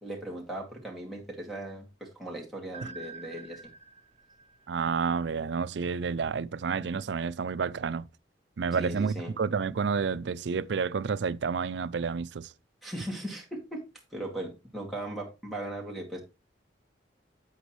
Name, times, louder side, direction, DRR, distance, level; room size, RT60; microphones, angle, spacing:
voice 1, 0.0-3.6 8.8-9.3 12.8-13.8 14.1-16.2, right 1 dB, ahead, 2.3 m, -38 dB
sound 1, 2.7-5.7, right 4 dB, 35° right, 0.6 m, -47 dB
voice 2, 4.7-8.0 8.6-12.5, right 5 dB, 75° right, 0.4 m, -30 dB
8.2 x 8.2 x 3.1 m
head